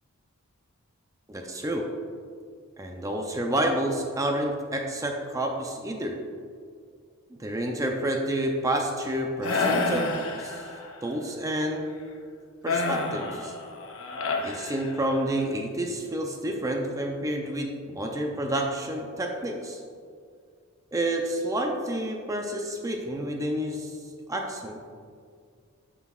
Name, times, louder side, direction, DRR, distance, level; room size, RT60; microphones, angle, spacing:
voice 1, 1.3-1.9 2.8-6.2 7.3-10.1 10.4-10.7 11.0-12.0 12.6-13.5 14.4-19.8 20.9-24.0 24.3-24.8, right 1 dB, 15° right, 2 dB, 0.5 m, -29 dB
sound 1, 9.4-11.0 12.7-15.3, left 3 dB, 65° left, 0.7 m, -29 dB
9.1 x 6.1 x 2.4 m, 2.2 s
head